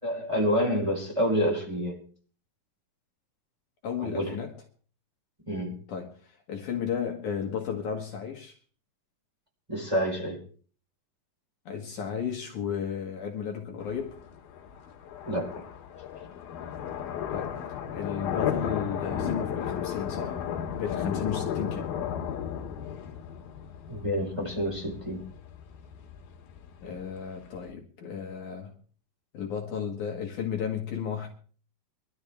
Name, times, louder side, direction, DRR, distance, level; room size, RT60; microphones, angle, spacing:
voice 1, 0.0-2.0 4.0-4.4 5.5-5.8 9.7-10.4 15.2-15.7 23.9-25.2, equal, 10° right, 4.3 m, -28 dB
voice 2, 3.8-4.5 5.9-8.6 11.7-14.2 17.3-17.6 17.9-20.4 20.8-22.0 26.8-28.8 29.3-31.3, left 7 dB, 60° left, 3.0 m, -34 dB
sound 1, 13.8-27.7, left 8 dB, 85° left, 3.5 m, -34 dB
23.5 x 13.0 x 3.6 m
omnidirectional pair, 4.1 m